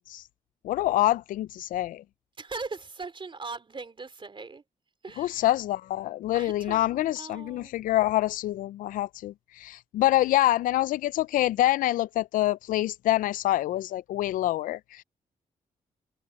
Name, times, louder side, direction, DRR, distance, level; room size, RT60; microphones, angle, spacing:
voice 1, 0.6-2.0 5.2-15.0, left 15 dB, 80° left, 0.4 m, -26 dB
voice 2, 2.4-4.6 5.0-5.4 6.3-7.7, right 4 dB, 40° right, 3.6 m, -40 dB
supercardioid pair, 55°, 14 cm